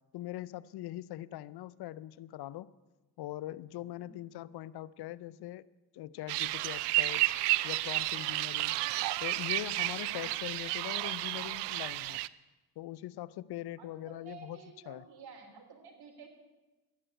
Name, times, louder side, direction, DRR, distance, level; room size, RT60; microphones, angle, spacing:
voice 1, 0.1-2.7 3.2-5.7 5.9-7.2 7.6-8.8 9.2-12.2 12.8-14.6 14.9-15.0, left 14 dB, 70° left, 18 dB, 0.6 m, -42 dB
sound 1, 6.3-12.3, right 18 dB, 85° right, 0.5 m, -32 dB
voice 2, 13.8-16.4, right 5 dB, 65° right, 3 dB, 3.3 m, -52 dB
12.5 x 9.9 x 7.8 m, 1.1 s
supercardioid pair, 70°, 41 cm